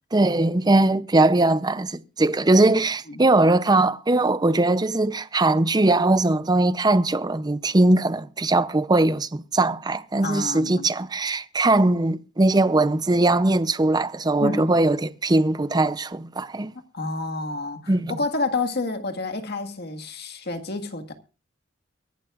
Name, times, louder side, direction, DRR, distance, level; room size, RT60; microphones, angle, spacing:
voice 1, 0.1-16.7 17.9-18.1, right 2 dB, 20° right, 0.6 m, -20 dB
voice 2, 10.2-10.9 14.4-14.7 16.9-21.1, left 3 dB, 60° left, 1.8 m, -29 dB
23.5 x 11.5 x 2.5 m
head